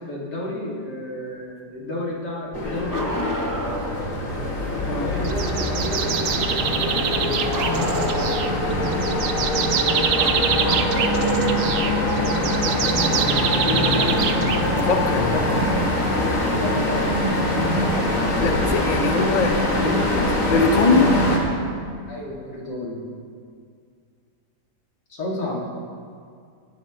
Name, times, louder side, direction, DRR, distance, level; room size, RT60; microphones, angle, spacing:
voice 1, 0.0-3.3 4.9-8.3 13.3-14.9 16.5-17.2 22.1-23.1 25.1-25.7, left 2 dB, 85° left, -4 dB, 2.7 m, -31 dB
sound 1, 2.5-21.4, left 1 dB, 55° left, 2.2 m, -23 dB
Bark, 2.9-4.0 7.5-8.6 10.2-11.7 13.3-13.4 15.4-15.5 16.6-16.7, right 1 dB, 20° right, 0.6 m, -30 dB
sound 2, 5.2-15.1, right 7 dB, 65° right, 0.8 m, -26 dB
voice 2, 13.3-14.1 14.7-15.6 18.4-21.2, left 4 dB, 35° left, 4 dB, 0.7 m, -23 dB
17.0 x 12.0 x 3.0 m, 2.2 s
omnidirectional pair, 1.8 m